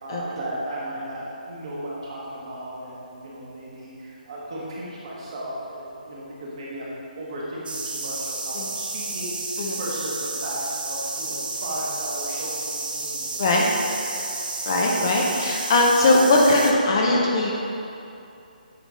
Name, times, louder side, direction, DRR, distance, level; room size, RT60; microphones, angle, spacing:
voice 1, 0.0-13.4, right 1 dB, 40° right, -6 dB, 1.3 m, -35 dB
sound 1, 7.7-16.7, right 3 dB, 85° right, 0.7 m, -31 dB
voice 2, 14.7-17.5, left 2 dB, 30° left, -1 dB, 0.6 m, -20 dB
9.0 x 3.4 x 3.7 m, 2.8 s
hypercardioid pair, 170°, 5 cm